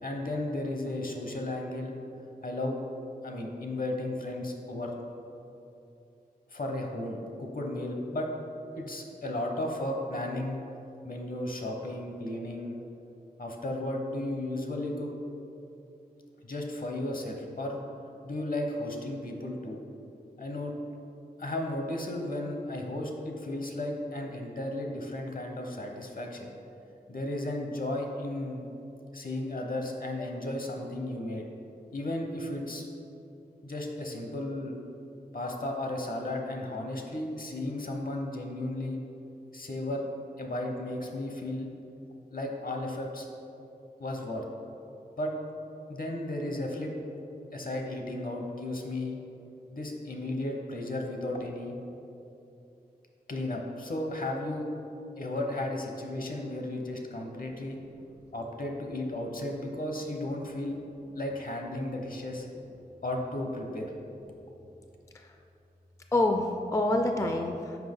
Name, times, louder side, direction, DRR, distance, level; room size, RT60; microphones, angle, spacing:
voice 1, 0.0-1.9 2.4-2.8 3.2-4.9 6.5-8.3 8.9-10.6 11.0-12.8 13.4-15.1 16.4-17.8 18.2-19.8 20.4-20.7 21.4-26.5 27.1-28.6 29.1-31.4 31.9-32.9 33.6-34.8 35.3-39.0 39.5-40.0 40.4-41.7 42.3-43.3 44.0-44.4 45.2-45.3 45.9-46.9 47.5-49.2 49.7-51.8 53.3-54.7 55.2-57.8 58.3-60.8 61.1-62.5 63.0-63.9, left 1 dB, 60° left, 2 dB, 0.8 m, -34 dB
voice 2, 66.1-67.8, left 2 dB, 20° left, 4 dB, 0.3 m, -27 dB
5.9 x 4.9 x 3.7 m, 2.8 s
wide cardioid pair, 55°, 16 cm